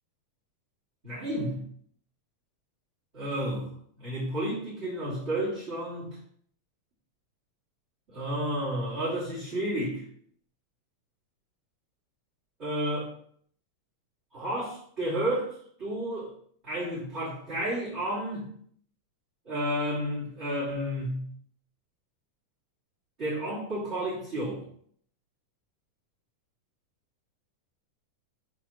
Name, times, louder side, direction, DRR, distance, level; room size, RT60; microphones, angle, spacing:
voice 1, 1.0-1.6 3.1-3.7 4.0-6.2 8.1-10.0 12.6-13.1 14.3-16.3 16.6-18.5 19.4-21.3 23.2-24.6, right 1 dB, 20° right, -8 dB, 3.1 m, -31 dB
7.5 x 4.6 x 6.0 m, 0.63 s
omnidirectional pair, 3.7 m